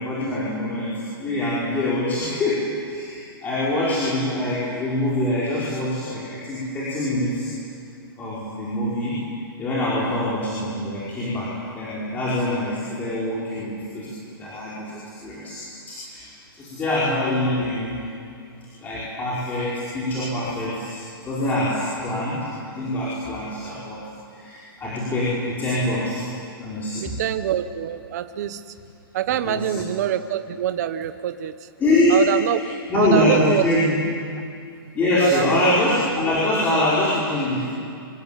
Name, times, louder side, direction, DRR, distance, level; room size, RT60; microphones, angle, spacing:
voice 1, 0.0-7.5 8.2-9.2 9.6-14.1 14.4-18.0 18.8-24.0 24.3-26.2 26.6-27.1 29.4-29.8 31.8-32.3 32.5-33.9 34.9-37.7, left 1 dB, 15° left, -8 dB, 5.5 m, -24 dB
voice 2, 27.0-28.6 29.1-31.7 32.1-32.6 32.9-33.7 35.2-35.8, right 11 dB, 45° right, 10 dB, 1.2 m, -25 dB
26.0 x 23.5 x 9.3 m, 2.4 s
hypercardioid pair, 160°, 13 cm